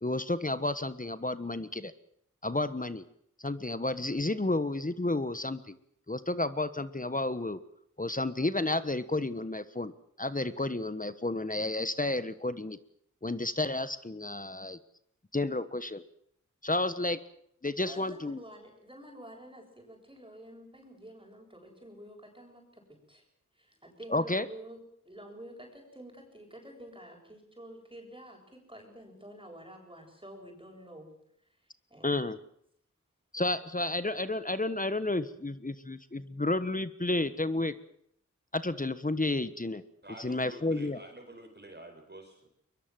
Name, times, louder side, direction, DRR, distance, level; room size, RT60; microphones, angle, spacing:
voice 1, 0.0-1.9 2.4-3.0 3.4-5.8 6.1-7.6 8.0-9.9 10.2-12.8 13.2-14.8 15.3-16.0 16.6-17.2 17.6-18.4 24.1-24.5 32.0-32.4 33.3-37.7 38.5-39.8 40.2-41.0, left 2 dB, 25° left, 13 dB, 1.3 m, -31 dB
voice 2, 17.8-23.2 23.6-31.1 31.9-32.2 33.4-33.6, right 1 dB, 15° right, 2 dB, 7.9 m, -49 dB
voice 3, 40.0-42.5, right 1 dB, 35° right, 4 dB, 5.1 m, -48 dB
22.5 x 22.0 x 7.7 m, 0.70 s
cardioid pair, 45°, 30 cm